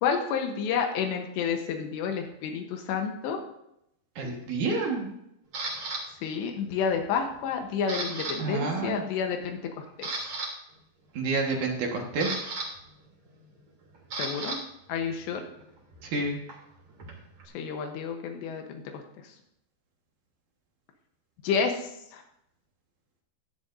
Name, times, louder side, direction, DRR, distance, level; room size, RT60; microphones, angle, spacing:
voice 1, 0.0-3.4 6.2-10.1 14.1-14.6 14.9-15.4 17.5-18.8 19.2-19.3 21.4-22.2, left 6 dB, 85° left, 4 dB, 3.1 m, -30 dB
voice 2, 4.2-5.1 8.4-9.0 11.2-12.4 16.1-16.4, right 3 dB, 60° right, 1 dB, 2.5 m, -29 dB
Camera, 5.5-6.0 6.6-6.9 7.3-8.4 8.6-8.8 9.4-9.5 9.9-10.5 11.7-14.6 14.9-17.5, right 3 dB, 40° right, 3.7 m, -36 dB
16.0 x 11.0 x 2.6 m, 0.78 s
omnidirectional pair, 5.0 m